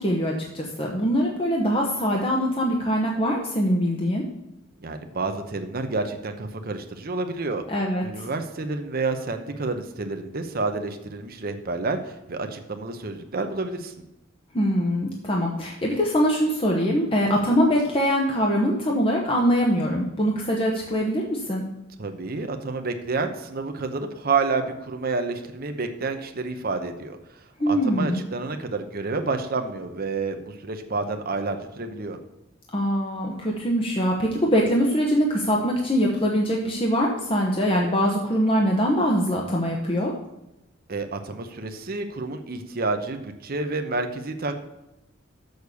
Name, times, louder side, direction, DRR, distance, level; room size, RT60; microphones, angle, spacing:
voice 1, 0.0-4.2 7.7-8.2 14.5-21.6 27.6-28.2 32.7-40.1, equal, 30° left, -1 dB, 1.1 m, -23 dB
voice 2, 4.8-7.6 8.0-14.0 22.0-32.2 40.9-44.6, right 3 dB, 50° right, 6 dB, 0.8 m, -29 dB
6.7 x 6.5 x 6.9 m, 0.93 s
head